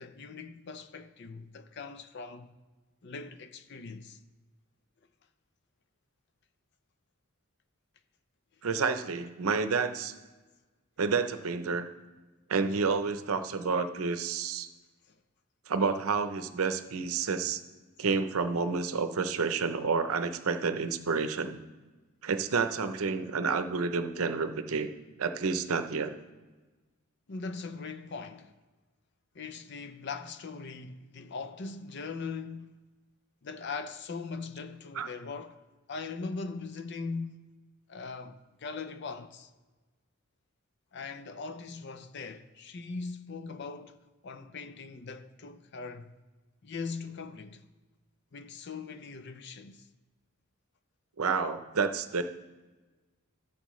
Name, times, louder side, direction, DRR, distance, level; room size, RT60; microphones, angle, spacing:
voice 1, 0.0-2.5 3.0-4.2 27.3-28.5 29.3-32.8 33.4-35.6 35.9-37.5 37.9-39.5 40.9-44.0 44.2-46.1 46.6-47.6 48.3-49.9, left 4 dB, 50° left, 0.5 m, -40 dB
voice 2, 8.6-10.1 11.0-11.9 12.5-14.7 15.7-17.6 18.0-21.6 22.2-24.9 25.2-26.2 35.0-35.1 51.2-52.2, right 5 dB, 80° right, 0.7 m, -29 dB
14.0 x 7.2 x 3.2 m
head